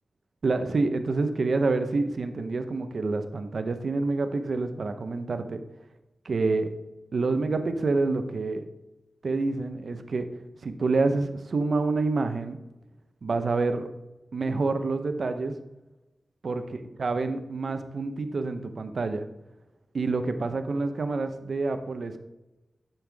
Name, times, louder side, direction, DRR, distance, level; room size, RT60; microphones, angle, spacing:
voice 1, 0.4-5.6 6.2-6.7 7.1-8.6 9.2-10.3 10.6-12.6 13.2-13.9 14.3-15.5 16.4-19.3 19.9-22.2, right 3 dB, 70° right, 8 dB, 0.9 m, -27 dB
10.5 x 5.7 x 3.5 m, 1.0 s
cardioid pair, 55°, 0 cm